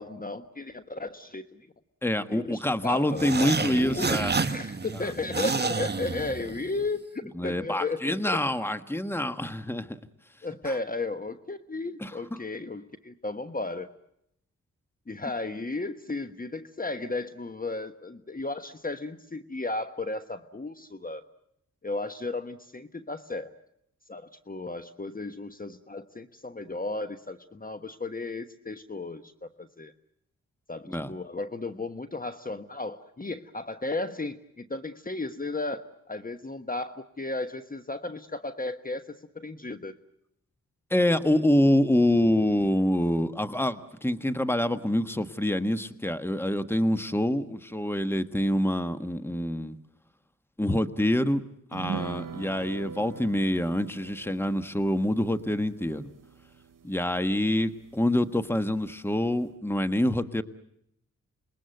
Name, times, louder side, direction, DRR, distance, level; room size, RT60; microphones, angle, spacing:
voice 1, 0.0-1.7 2.3-4.2 4.5-8.2 10.4-13.9 15.1-21.2 21.8-23.5 24.1-29.9 30.7-39.9, left 2 dB, 25° left, 10 dB, 1.2 m, -34 dB
voice 2, 2.0-4.3 7.3-10.0 10.6-10.7 12.0-12.4 30.9-31.1 40.9-49.8 50.6-51.4 51.7-56.1 56.8-60.4, left 1 dB, 5° left, 11 dB, 1.4 m, -26 dB
sound 1, 3.1-6.9, right 4 dB, 30° right, 1.1 m, -30 dB
sound 2, 51.7-58.5 58.8-58.9 59.3-59.4, right 7 dB, 80° right, 1.2 m, -42 dB
27.5 x 21.0 x 7.9 m, 0.76 s
cardioid pair, 55°, 32 cm